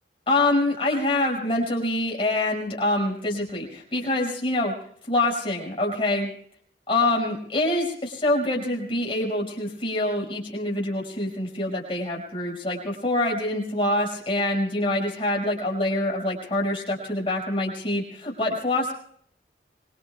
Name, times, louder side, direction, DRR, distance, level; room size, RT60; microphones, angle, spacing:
voice 1, 0.3-4.7 5.1-6.3 6.9-18.9, left 1 dB, 30° left, -2 dB, 5.7 m, -25 dB
26.5 x 23.0 x 2.3 m, 0.63 s
head